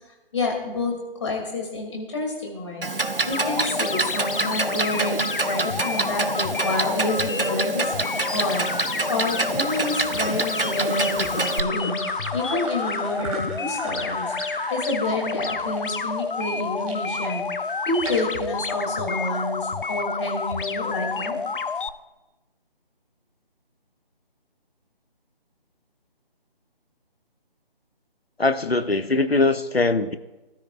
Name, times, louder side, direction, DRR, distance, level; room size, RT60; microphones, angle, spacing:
voice 1, 0.3-2.9 3.3-14.3 14.7-17.4 17.8-21.3, left 2 dB, 30° left, -1 dB, 2.8 m, -29 dB
Clock, 2.8-11.6, right 3 dB, 70° right, 0.9 m, -27 dB
sound 1, 3.3-21.9, left 4 dB, 60° left, 0.7 m, -29 dB
sound 2, 7.8-17.0 17.5-18.5, right 2 dB, 35° right, 2.1 m, -39 dB
voice 2, 28.4-30.2, left 3 dB, 90° left, 11 dB, 0.9 m, -21 dB
19.0 x 13.0 x 2.5 m, 1.1 s
figure-of-eight pair, 155°, 29 cm